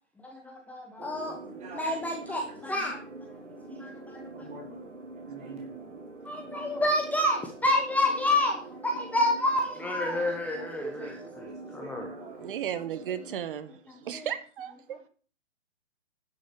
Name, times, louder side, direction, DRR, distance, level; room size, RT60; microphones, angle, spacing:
voice 1, 0.2-1.4 1.7-3.0 3.7-4.5 6.2-12.1 13.9-14.3, left 1 dB, 5° left, 1 dB, 1.0 m, -29 dB
sound 1, 1.0-13.4, right 2 dB, 90° right, 2.3 m, -45 dB
voice 2, 1.2-1.8 2.1-2.3 2.7-2.8 4.3-4.9 5.3-5.9 6.4-6.7 10.6-12.5, right 3 dB, 20° right, -1 dB, 3.3 m, -45 dB
voice 3, 12.4-15.0, right 9 dB, 45° right, 12 dB, 1.5 m, -35 dB
11.5 x 6.4 x 6.8 m, 0.40 s
hypercardioid pair, 135°, 36 cm